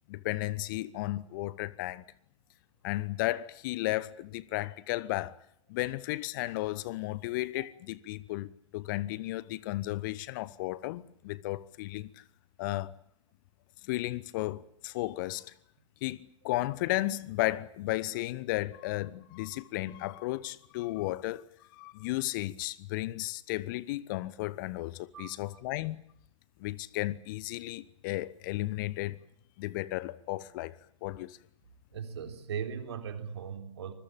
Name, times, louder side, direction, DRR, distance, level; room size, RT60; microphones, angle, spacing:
voice 1, 0.1-2.0 2.8-5.4 5.7-12.2 12.6-12.9 13.8-15.5 16.0-21.5 21.7-26.0 26.6-29.2 29.6-30.8 31.0-31.4, left 18 dB, 40° left, 1.0 m, -34 dB
voice 2, 25.1-25.5 31.9-33.9, right 7 dB, 60° right, 3.5 m, -38 dB
26.0 x 21.0 x 8.8 m
figure-of-eight pair, 105°, 16 cm